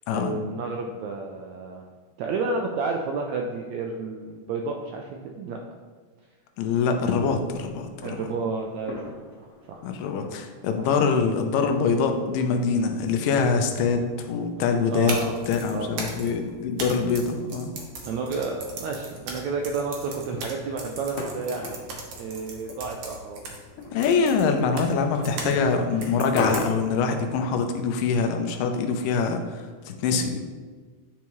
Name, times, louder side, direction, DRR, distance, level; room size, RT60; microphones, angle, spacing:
voice 1, 0.1-1.9 2.2-5.6 8.0-9.8 10.8-10.9 14.9-15.4 15.7-16.2 18.0-21.7 22.2-23.4 25.4-25.5, right 4 dB, 85° right, 1 dB, 1.6 m, -31 dB
voice 2, 6.6-8.2 9.8-17.7 23.9-30.4, left 5 dB, 90° left, 5 dB, 2.3 m, -24 dB
sound 1, 7.3-26.6, left 3 dB, 65° left, 2.1 m, -42 dB
sound 2, 14.9-25.6 26.0-27.0, right 3 dB, 65° right, 1.6 m, -38 dB
9.5 x 4.7 x 3.0 m, 1.5 s
omnidirectional pair, 3.8 m